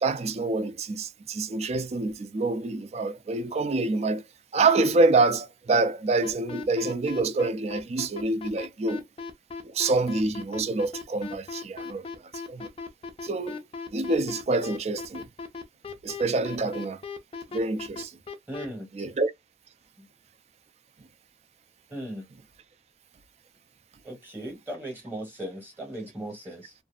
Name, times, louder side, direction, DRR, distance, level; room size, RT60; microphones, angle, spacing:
voice 1, 0.0-4.2 4.5-9.0 9.6-12.1 12.5-12.7 13.2-13.6 13.9-15.3 16.0-17.0 17.5-18.1 18.9-19.3, right 3 dB, 35° right, 0.3 m, -26 dB
sound 1, 6.2-18.7, left 4 dB, 30° left, 0.4 m, -37 dB
voice 2, 18.5-18.9 20.0-20.1 21.9-22.2 24.0-26.7, right 1 dB, 10° right, 0.9 m, -37 dB
2.6 x 2.3 x 2.3 m
head